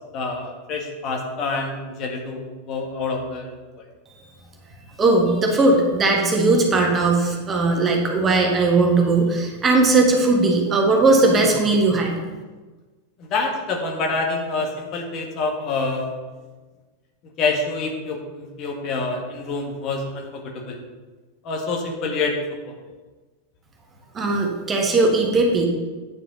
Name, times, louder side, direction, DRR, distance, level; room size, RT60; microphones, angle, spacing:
voice 1, 0.1-3.8 13.3-16.1 17.4-20.8 21.4-22.7, left 3 dB, 35° left, 1 dB, 1.6 m, -27 dB
voice 2, 5.0-12.1 24.1-25.7, right 3 dB, 20° right, 1 dB, 1.7 m, -18 dB
9.5 x 5.6 x 5.5 m, 1.3 s
figure-of-eight pair, 90°, 0 cm